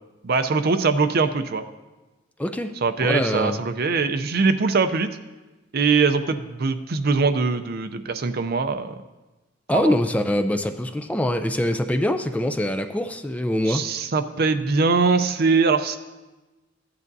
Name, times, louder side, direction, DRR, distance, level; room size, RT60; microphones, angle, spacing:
voice 1, 0.2-1.6 2.8-5.1 5.7-8.9 9.7-10.0 13.7-16.0, right 4 dB, 55° right, 9 dB, 0.5 m, -22 dB
voice 2, 2.4-2.7 3.0-3.6 9.7-13.8, left 1 dB, 5° left, 7 dB, 0.4 m, -24 dB
14.5 x 9.7 x 2.7 m, 1.1 s
head